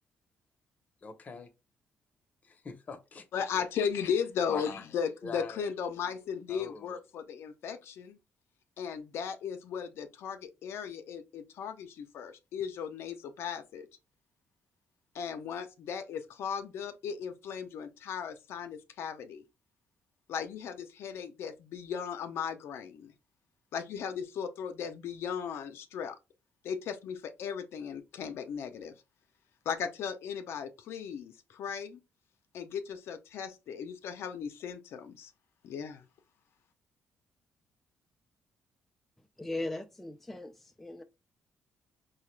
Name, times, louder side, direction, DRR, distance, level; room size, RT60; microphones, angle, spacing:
voice 1, 1.0-1.5 2.4-3.6 4.5-4.8 5.2-5.7 6.5-7.0, left 4 dB, 35° left, 0.8 m, -43 dB
voice 2, 3.3-8.2 8.8-13.9 15.1-19.4 20.3-23.1 23.7-26.2 26.6-29.0 29.7-32.0 32.5-35.3 35.6-36.1, left 7 dB, 70° left, 0.5 m, -36 dB
voice 3, 39.4-41.0, left 2 dB, 5° left, 0.3 m, -38 dB
4.7 x 2.2 x 3.1 m
cardioid pair, 120°, 4 cm